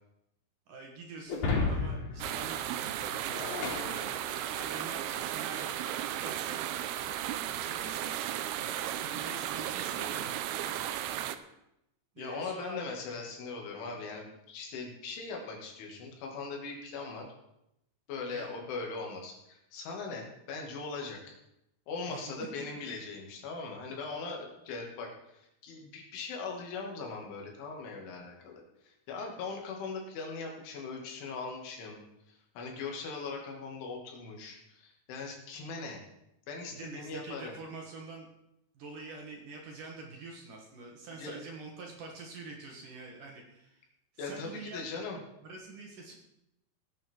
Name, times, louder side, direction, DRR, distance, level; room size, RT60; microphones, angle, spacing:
voice 1, 0.7-4.2 4.5-6.6 7.0-7.2 7.4-8.3 8.6-10.6 12.2-12.8 18.3-18.5 22.1-22.2 22.6-22.7 36.7-38.3 38.7-43.8 44.2-44.8 45.4-46.1, right 3 dB, 60° right, 0 dB, 2.6 m, -46 dB
Shatter, 1.3-4.8, left 4 dB, 65° left, 5.6 m, -34 dB
sound 1, 2.2-11.4, right 11 dB, 85° right, 2.3 m, -35 dB
voice 2, 12.2-17.3 18.1-21.4 21.9-32.0 32.3-36.0 36.5-37.5 41.2-41.3 44.2-45.2, left 4 dB, 85° left, 0 dB, 4.8 m, -40 dB
18.0 x 9.0 x 4.7 m, 0.84 s
omnidirectional pair, 5.3 m